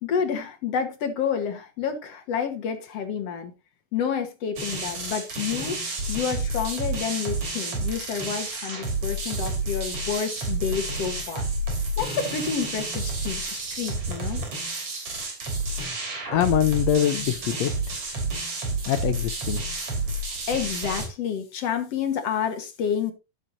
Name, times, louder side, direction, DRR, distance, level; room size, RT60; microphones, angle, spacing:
voice 1, 0.0-3.5 3.9-5.8 6.1-11.5 12.0-14.5 20.5-23.1, left 7 dB, 55° left, 2.1 m, -29 dB
sound 1, 4.6-21.1, right 2 dB, 45° right, 4.0 m, -30 dB
voice 2, 16.3-17.7 18.9-19.6, left 11 dB, 75° left, 1.6 m, -23 dB
12.0 x 10.5 x 2.7 m
omnidirectional pair, 3.9 m